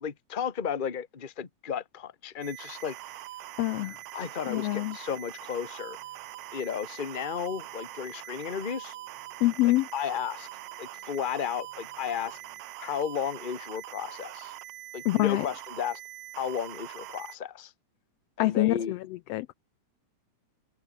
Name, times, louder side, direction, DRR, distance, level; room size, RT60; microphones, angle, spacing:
voice 1, 0.0-2.9 4.1-6.0 6.5-9.0 9.6-10.5 10.8-12.4 12.8-14.5 14.9-16.0 16.4-17.7 18.4-19.0, left 7 dB, 30° left, 0.9 m, -34 dB
sound 1, 2.4-17.4, right 16 dB, 75° right, 1.4 m, -43 dB
voice 2, 3.6-4.0 4.5-4.9 9.4-9.9 15.0-15.4 18.4-19.0 19.3-19.5, left 18 dB, 85° left, 1.4 m, -25 dB
sound 2, 5.2-12.6, left 3 dB, 65° left, 9.0 m, -65 dB
omnidirectional pair, 3.4 m